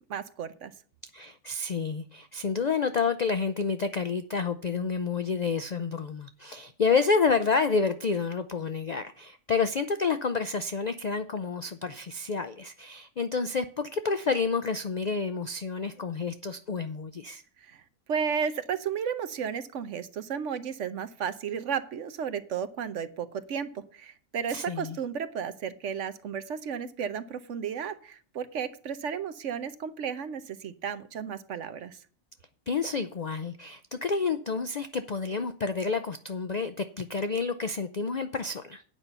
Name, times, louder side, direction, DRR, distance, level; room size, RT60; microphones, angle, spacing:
voice 1, 0.1-0.7 17.6-17.8 18.1-32.0, right 7 dB, 65° right, 12 dB, 1.1 m, -33 dB
voice 2, 1.1-17.4 24.5-25.0 32.7-38.8, left 5 dB, 60° left, 10 dB, 0.4 m, -29 dB
9.0 x 5.6 x 8.0 m, 0.43 s
omnidirectional pair, 1.4 m